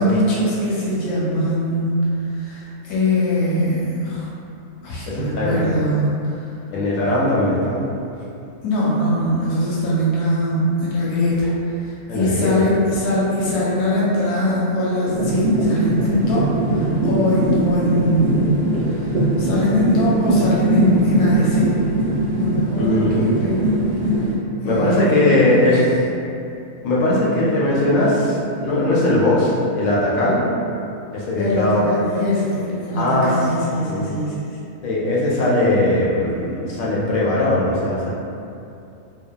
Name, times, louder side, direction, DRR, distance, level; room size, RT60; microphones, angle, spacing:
voice 1, 0.0-4.3 4.8-6.5 8.6-18.6 18.8-21.8 22.3-23.8 24.6-25.8 31.4-34.4, left 1 dB, 85° left, -6 dB, 1.2 m, -22 dB
voice 2, 5.1-5.7 6.7-7.8 12.1-12.6 22.7-23.2 24.6-25.8 26.8-30.4 31.1-31.8 32.9-33.3 33.8-34.2 34.8-38.1, left 1 dB, 70° left, -6 dB, 0.9 m, -19 dB
sound 1, 15.1-24.3, right 2 dB, 85° right, 0.5 m, -20 dB
2.7 x 2.1 x 2.2 m, 2.7 s
omnidirectional pair, 1.6 m